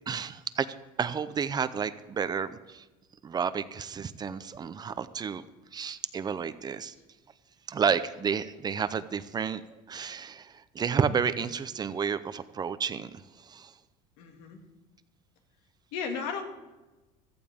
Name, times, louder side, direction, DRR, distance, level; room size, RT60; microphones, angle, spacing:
voice 1, 0.1-0.7 1.0-2.8 3.2-5.4 5.7-6.9 7.7-9.6 9.9-13.1 13.5-13.7, right 6 dB, 25° right, 13 dB, 0.6 m, -31 dB
voice 2, 14.2-14.6 15.9-16.4, left 6 dB, 80° left, 4 dB, 2.2 m, -34 dB
15.5 x 14.0 x 3.6 m, 1.1 s
cardioid pair, 130°, 16 cm